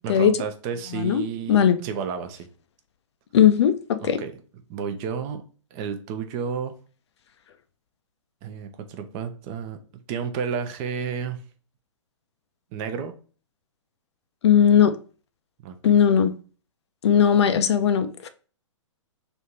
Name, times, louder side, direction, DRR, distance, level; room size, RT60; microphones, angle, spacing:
voice 1, 0.0-2.5 4.0-4.3 4.7-5.4 5.7-6.8 8.4-9.8 10.1-11.4 12.7-13.1 15.6-15.8, right 6 dB, 30° right, 0.6 m, -31 dB
voice 2, 3.3-4.2 14.4-15.0 15.8-16.3 17.0-18.3, left 8 dB, 55° left, 0.5 m, -18 dB
3.4 x 2.7 x 4.4 m
figure-of-eight pair, 120°, 17 cm